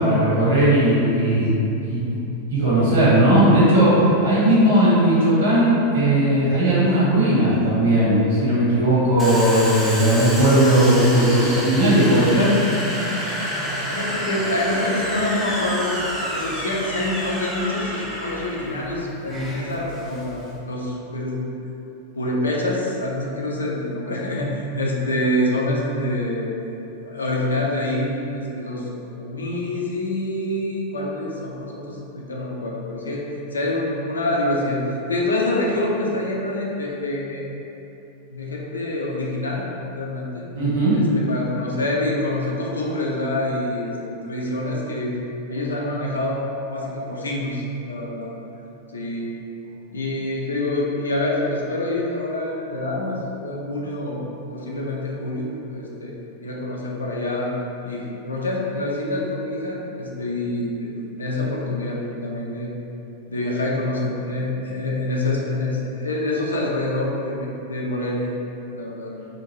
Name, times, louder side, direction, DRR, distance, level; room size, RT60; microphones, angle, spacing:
voice 1, 0.0-1.5 1.8-2.0 2.5-12.5 40.5-41.0, right 1 dB, 60° right, -9 dB, 1.2 m, -17 dB
Domestic sounds home sounds, 9.2-20.6, equal, ahead, 0.6 m, -28 dB
voice 2, 13.9-16.0 16.3-20.4 20.7-21.4 22.1-26.5 27.0-34.8 35.1-37.4 38.3-40.4 40.9-45.1 45.5-46.4 46.7-48.3 48.9-49.4 49.9-54.2 54.5-56.1 56.4-57.5 57.8-60.9 61.2-62.7 63.3-68.3 68.7-69.1, left 1 dB, 75° left, -3 dB, 0.4 m, -26 dB
2.8 x 2.6 x 2.9 m, 2.9 s
figure-of-eight pair, 90°, 0 cm